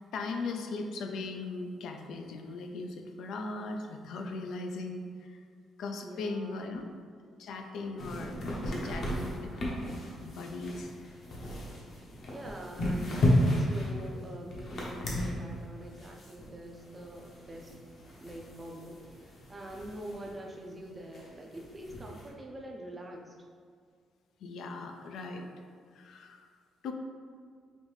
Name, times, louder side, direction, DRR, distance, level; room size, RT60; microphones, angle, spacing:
voice 1, 0.0-5.4 5.8-6.9 7.4-9.9 10.2-11.0 24.4-25.5 25.9-26.5 26.8-26.9, left 3 dB, 70° left, 4 dB, 0.4 m, -39 dB
voice 2, 6.0-6.8 12.3-17.7 18.2-23.3, right 1 dB, 20° right, 1 dB, 0.5 m, -45 dB
sound 1, 8.0-20.4 20.7-20.8 21.0-22.3, equal, 50° left, 0.8 m, -34 dB
5.1 x 2.6 x 3.2 m, 2.1 s
cardioid pair, 150°, 0 cm